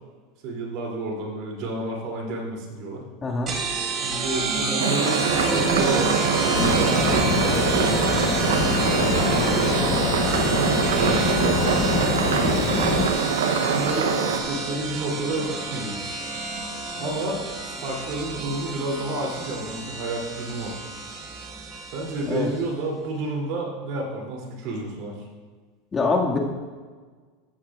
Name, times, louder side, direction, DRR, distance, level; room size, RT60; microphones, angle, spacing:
voice 1, 0.4-3.0 3.9-8.3 8.7-10.6 10.9-12.7 13.5-16.1 17.0-20.7 21.9-25.2, right 2 dB, 55° right, -1 dB, 3.0 m, -30 dB
sound 1, 3.5-22.6, right 3 dB, 35° right, 1.6 m, -29 dB
sound 2, 4.8-14.4, right 6 dB, 85° right, 0.8 m, -24 dB
sound 3, 6.5-13.1, left 7 dB, 45° left, 0.9 m, -26 dB
voice 2, 25.9-26.4, left 3 dB, 25° left, -1 dB, 2.0 m, -23 dB
14.0 x 8.6 x 2.5 m, 1.5 s
hypercardioid pair, 100°, 0 cm